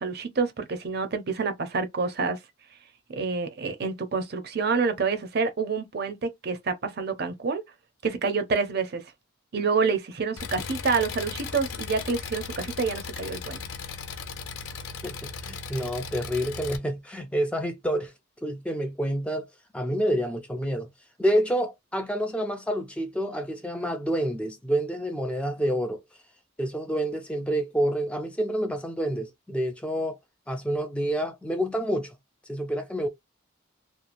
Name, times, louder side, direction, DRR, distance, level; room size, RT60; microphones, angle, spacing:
voice 1, 0.0-2.4 3.1-7.6 8.0-9.0 9.5-13.6, right 4 dB, 50° right, 0.5 m, -28 dB
Engine, 10.4-16.8, left 5 dB, 85° left, 0.5 m, -37 dB
voice 2, 15.0-18.1 18.4-19.5 19.7-20.9 21.2-26.0 26.6-30.2 30.5-32.1 32.5-33.1, equal, 5° left, 0.3 m, -28 dB
2.9 x 2.3 x 2.5 m
head